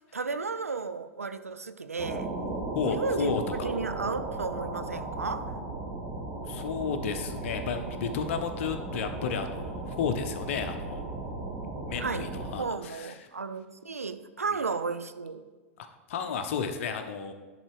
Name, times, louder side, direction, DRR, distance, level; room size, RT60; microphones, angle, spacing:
voice 1, 0.1-2.3 2.8-3.3 3.6-5.5 12.0-12.3 12.6-15.4, right 4 dB, 90° right, 11 dB, 0.4 m, -33 dB
sound 1, 2.0-12.6, right 2 dB, 55° right, 2.6 m, -36 dB
voice 2, 2.7-3.7 6.4-11.0 11.9-13.2 14.5-14.6 15.8-17.3, left 6 dB, 60° left, 8 dB, 0.8 m, -32 dB
10.5 x 4.0 x 4.8 m, 1.3 s
figure-of-eight pair, 90°, 8 cm